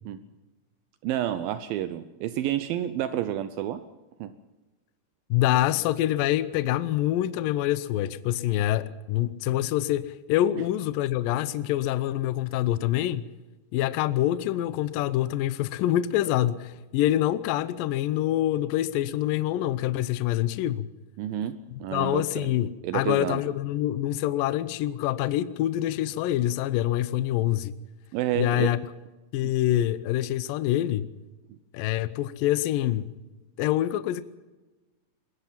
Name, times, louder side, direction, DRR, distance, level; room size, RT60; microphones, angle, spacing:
voice 1, 1.0-3.8 4.2-4.3 21.2-22.5 22.8-23.4 28.1-28.8 29.4-29.5, right 12 dB, 80° right, 2.1 m, -30 dB
voice 2, 5.3-13.3 13.7-20.9 21.9-27.8 28.4-28.8 29.3-31.1 31.7-33.1 33.6-34.2, left 13 dB, 80° left, 2.0 m, -26 dB
22.0 x 21.0 x 5.8 m
omnidirectional pair, 5.1 m